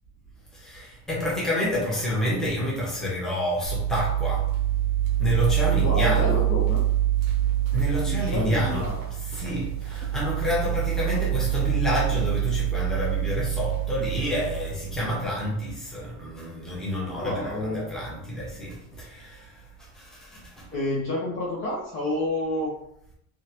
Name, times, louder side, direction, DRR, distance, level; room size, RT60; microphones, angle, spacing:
voice 1, 0.5-4.4 5.2-6.4 7.7-8.8 9.3-19.7 19.9-20.7, left 1 dB, ahead, -7 dB, 0.9 m, -29 dB
sound 1, 3.6-15.2, right 12 dB, 45° right, 0.8 m, -26 dB
voice 2, 5.8-6.8 8.0-9.0 17.1-17.9 20.7-22.7, left 1 dB, 25° left, -4 dB, 0.7 m, -29 dB
3.6 x 3.2 x 2.9 m, 0.75 s
cardioid pair, 160°, 44 cm